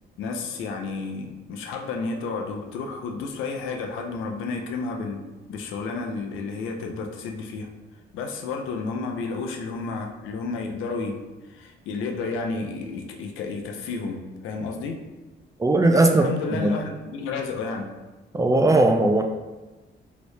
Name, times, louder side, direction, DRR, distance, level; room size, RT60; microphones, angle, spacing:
voice 1, 0.2-7.7 8.1-11.2 11.5-15.0 15.9-17.9, left 4 dB, 90° left, 3 dB, 0.5 m, -31 dB
voice 2, 15.6-16.2 16.5-16.7 18.3-19.2, right 2 dB, 15° right, 4 dB, 0.3 m, -18 dB
2.9 x 2.7 x 3.2 m, 1.1 s
cardioid pair, 90°, 20 cm